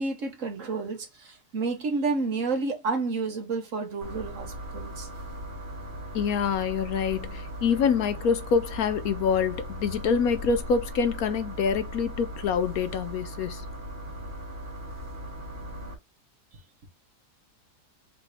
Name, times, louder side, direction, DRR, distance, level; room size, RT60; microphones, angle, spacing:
voice 1, 0.0-5.1, right 3 dB, 55° right, 1.4 m, -30 dB
sound 1, 4.0-15.9, equal, 30° right, 1.7 m, -38 dB
voice 2, 6.1-13.6, left 6 dB, 70° left, 1.0 m, -26 dB
4.1 x 3.6 x 3.2 m
omnidirectional pair, 1.7 m